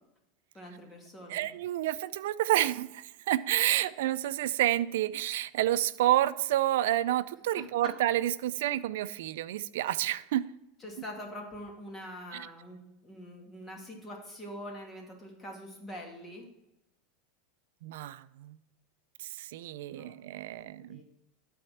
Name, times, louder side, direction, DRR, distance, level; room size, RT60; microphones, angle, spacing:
voice 1, 0.5-1.5 7.6-7.9 10.8-16.5 19.9-20.2 20.5-21.0, equal, 15° left, 0 dB, 2.3 m, -44 dB
voice 2, 1.3-10.4 12.3-12.5 17.8-18.6 19.4-21.0, right 13 dB, 80° right, 15 dB, 0.4 m, -29 dB
12.0 x 4.3 x 5.8 m, 0.86 s
supercardioid pair, 135°, 0 cm